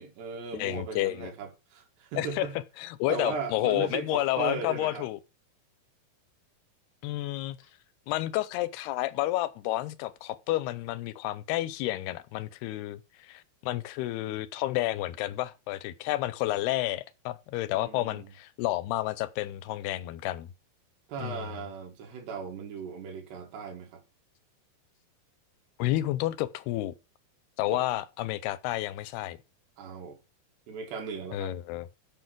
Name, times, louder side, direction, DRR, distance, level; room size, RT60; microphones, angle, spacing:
voice 1, 0.0-2.6 3.1-5.1 17.7-18.3 21.1-24.0 27.7-27.8 29.8-30.2 30.7-31.5, right 5 dB, 90° right, 4.5 m, -37 dB
voice 2, 0.5-1.3 2.2-2.5 2.8-5.2 7.0-7.6 8.1-20.5 21.2-21.5 25.8-26.9 27.6-29.4 31.3-31.9, left 16 dB, 85° left, 2.7 m, -30 dB
7.9 x 7.4 x 6.1 m
omnidirectional pair, 4.7 m